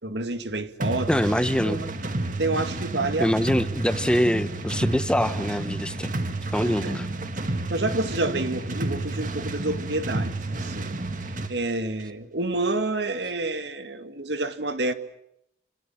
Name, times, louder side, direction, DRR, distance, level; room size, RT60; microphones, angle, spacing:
voice 1, 0.0-1.1 1.6-1.9 2.4-3.3 6.6-7.0 7.7-10.3 10.6-11.0 11.5-14.9, right 2 dB, 80° right, 2.2 m, -28 dB
sound 1, 0.8-11.6, right 2 dB, 45° right, 2.0 m, -30 dB
voice 2, 1.1-1.8 3.2-6.1 6.5-7.1, equal, 5° left, 1.0 m, -24 dB
29.5 x 26.5 x 7.4 m
head